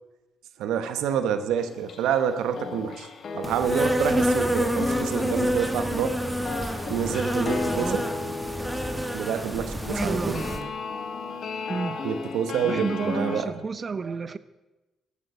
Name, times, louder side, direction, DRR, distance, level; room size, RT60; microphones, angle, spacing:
voice 1, 0.6-3.1 3.3-6.2 6.9-8.0 9.1-10.4 12.0-13.5, right 8 dB, 80° right, 1.0 m, -28 dB
sound 1, 1.6-2.3 2.5-13.4, left 4 dB, 55° left, 1.5 m, -35 dB
Insect, 3.4-10.6, equal, 5° right, 1.5 m, -27 dB
voice 2, 7.7-8.0 10.0-10.7 11.7-12.0 12.6-14.4, right 5 dB, 40° right, 0.7 m, -31 dB
14.5 x 8.6 x 6.2 m
supercardioid pair, 55°, 0 cm